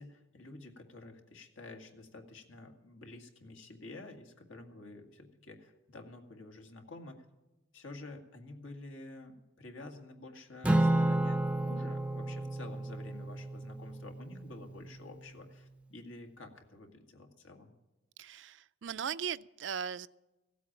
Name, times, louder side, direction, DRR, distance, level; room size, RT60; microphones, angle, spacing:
voice 1, 0.0-7.2 7.7-17.7, left 2 dB, 85° left, 4 dB, 2.0 m, -50 dB
Acoustic guitar / Strum, 10.6-15.1, right 1 dB, 5° right, 0.5 m, -31 dB
voice 2, 18.2-20.1, right 7 dB, 65° right, 16 dB, 0.4 m, -38 dB
16.0 x 8.3 x 8.8 m, 1.1 s
head